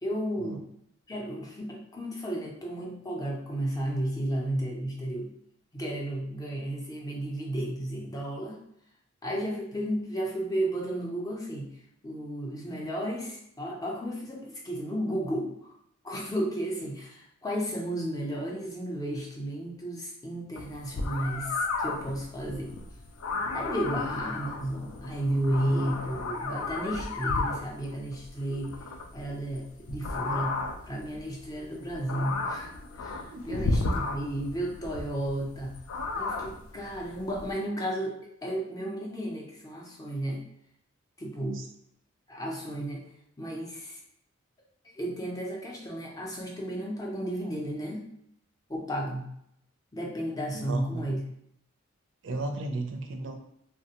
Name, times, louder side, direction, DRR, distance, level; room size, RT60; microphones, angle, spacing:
voice 1, 0.0-0.7 1.1-5.3 5.7-8.6 9.2-11.7 12.0-15.7 16.0-22.7 23.5-28.8 29.1-35.8 36.2-40.4 41.2-41.6 42.3-43.0 43.4-44.0 44.9-48.1 48.7-49.3 49.9-51.2, right 1 dB, 15° left, -2 dB, 0.5 m, -33 dB
sound 1, 20.6-37.5, left 3 dB, 80° left, 0.4 m, -34 dB
voice 2, 50.5-51.0 52.2-53.4, right 2 dB, 60° right, 4 dB, 0.4 m, -35 dB
3.2 x 2.1 x 2.8 m, 0.74 s
head